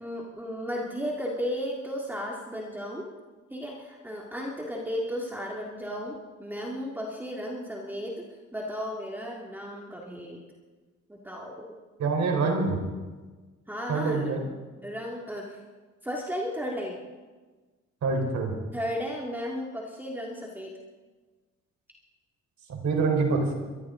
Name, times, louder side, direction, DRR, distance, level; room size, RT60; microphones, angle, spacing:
voice 1, 0.0-3.1 3.5-8.2 8.5-10.4 11.1-11.7 13.7-14.3 14.8-15.6 16.0-17.0 18.7-20.7, equal, 5° right, -2 dB, 2.3 m, -34 dB
voice 2, 12.0-12.8 13.9-14.4 18.0-18.5 22.7-23.5, right 4 dB, 65° right, 2 dB, 4.0 m, -25 dB
22.5 x 14.0 x 3.8 m, 1.3 s
cardioid pair, 90°, 30 cm